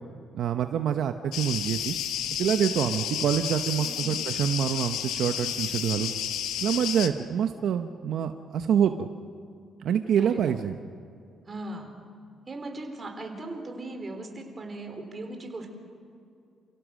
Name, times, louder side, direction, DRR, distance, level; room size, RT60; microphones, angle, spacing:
voice 1, 0.3-1.9 2.4-6.1 6.6-9.1 9.8-10.8, right 9 dB, 70° right, 7 dB, 0.9 m, -26 dB
sound 1, 1.3-7.1, left 10 dB, 90° left, 1.4 m, -31 dB
voice 2, 3.8-4.2 10.2-10.6 11.5-12.0 12.5-15.7, right 2 dB, 30° right, 4 dB, 4.0 m, -38 dB
29.5 x 16.5 x 6.4 m, 2.5 s
cardioid pair, 90°, 0 cm